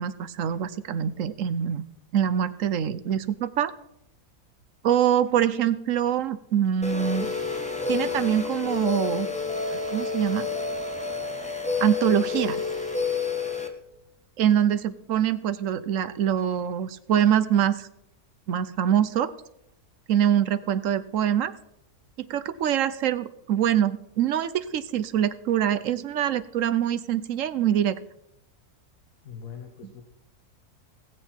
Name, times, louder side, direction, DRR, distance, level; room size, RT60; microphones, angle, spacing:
voice 1, 0.0-1.8 2.1-3.7 4.8-7.3 7.9-9.3 9.7-10.5 11.8-12.6 14.4-17.9 18.5-19.3 20.1-21.5 22.3-28.0 29.8-29.9, right 10 dB, 65° right, 14 dB, 0.9 m, -24 dB
sound 1, 6.8-13.7, left 5 dB, 5° left, 1.1 m, -29 dB
voice 2, 29.2-30.0, left 7 dB, 65° left, 3 dB, 1.5 m, -41 dB
19.0 x 7.7 x 4.4 m, 0.82 s
omnidirectional pair, 1.6 m